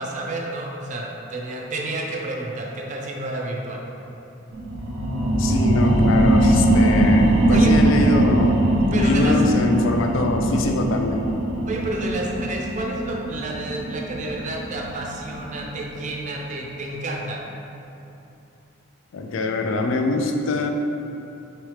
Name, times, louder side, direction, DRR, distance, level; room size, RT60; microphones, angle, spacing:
voice 1, 0.0-3.8 7.5-7.7 8.9-9.4 11.7-17.4, right 2 dB, 35° right, -1 dB, 0.4 m, -30 dB
sound 1, 4.5-15.7 16.1-16.2, right 1 dB, 90° right, 0.5 m, -20 dB
voice 2, 5.4-8.6 9.0-11.3 19.1-20.7, left 2 dB, 75° left, 4 dB, 0.4 m, -23 dB
4.8 x 3.2 x 3.2 m, 2.8 s
head